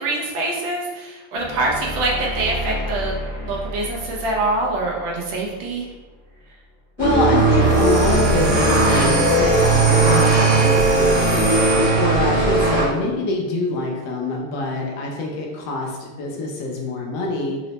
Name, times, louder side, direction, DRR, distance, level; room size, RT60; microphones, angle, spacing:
voice 1, 0.0-3.1 3.4-5.9, right 2 dB, 75° right, -2 dB, 1.2 m, -24 dB
sound 1, 1.3-6.4, equal, 60° left, 0.7 m, -32 dB
voice 2, 7.0-17.6, left 2 dB, 80° left, -1 dB, 1.0 m, -25 dB
sound 2, 7.0-12.8, right 3 dB, 55° right, 0.5 m, -17 dB
sound 3, 7.6-12.4, right 3 dB, 25° left, 0.7 m, -26 dB
4.1 x 2.0 x 2.7 m, 1.3 s
omnidirectional pair, 2.4 m